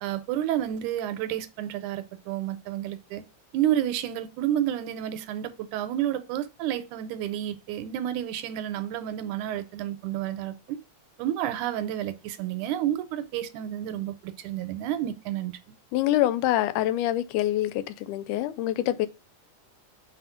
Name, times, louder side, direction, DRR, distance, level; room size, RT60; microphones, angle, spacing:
voice 1, 0.0-3.2 3.5-10.8 11.2-15.6, right 11 dB, 80° right, 2.0 m, -30 dB
voice 2, 15.9-19.1, left 13 dB, 85° left, 2.1 m, -25 dB
4.2 x 4.2 x 5.5 m
omnidirectional pair, 3.6 m